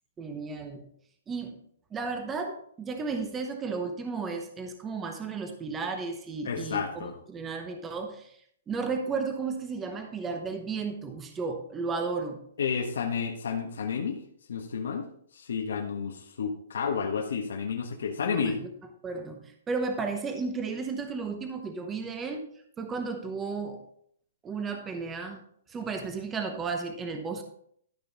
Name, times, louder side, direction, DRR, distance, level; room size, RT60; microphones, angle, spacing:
voice 1, 0.2-0.9 1.3-1.6 1.9-8.4 8.7-12.4 18.3-18.7 19.0-22.4 22.8-23.8 24.4-25.4 25.7-27.4, right 4 dB, 10° right, 5 dB, 0.8 m, -33 dB
voice 2, 6.4-7.1 12.6-14.2 14.5-15.0 15.3-18.5, left 6 dB, 85° left, 1 dB, 1.5 m, -31 dB
13.0 x 5.4 x 4.0 m, 0.64 s
hypercardioid pair, 170°, 0 cm